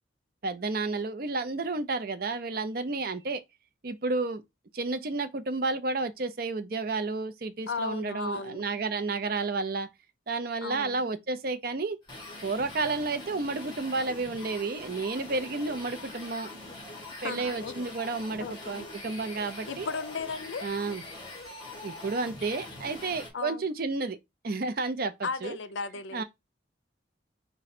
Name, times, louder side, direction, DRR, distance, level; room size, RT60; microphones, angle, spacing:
voice 1, 0.4-3.4 3.8-4.4 4.7-9.9 10.3-12.0 12.4-16.5 17.2-19.9 20.6-21.0 21.8-24.2 24.4-25.6 26.1-26.2, right 3 dB, 50° right, 0.6 m, -31 dB
voice 2, 7.7-8.7 10.6-11.1 17.2-17.8 18.4-18.9 19.7-20.7 23.3-23.7 25.2-26.2, left 4 dB, 75° left, 0.5 m, -35 dB
sound 1, 12.0-23.3, left 2 dB, 25° left, 1.4 m, -43 dB
4.9 x 2.2 x 4.2 m
head